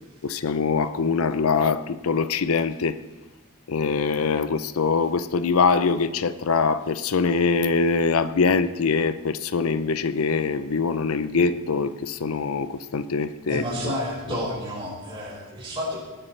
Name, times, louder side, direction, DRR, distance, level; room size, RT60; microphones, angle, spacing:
voice 1, 0.2-3.0 3.7-13.9, left 4 dB, 80° left, 13 dB, 0.6 m, -23 dB
voice 2, 13.5-16.0, equal, 25° right, -8 dB, 5.4 m, -30 dB
19.0 x 11.0 x 3.3 m, 1.2 s
head